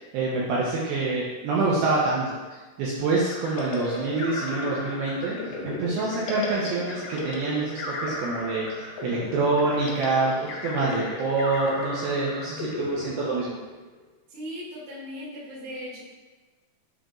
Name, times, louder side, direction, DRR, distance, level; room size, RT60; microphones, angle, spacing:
voice 1, 0.1-2.4 2.8-5.4 5.6-13.6, right 3 dB, 80° right, -5 dB, 2.3 m, -26 dB
sound 1, 3.3-13.9, left 3 dB, 85° left, 1.9 m, -35 dB
voice 2, 14.3-16.0, equal, 60° right, -9 dB, 1.4 m, -38 dB
7.2 x 2.9 x 2.5 m, 1.2 s
omnidirectional pair, 4.9 m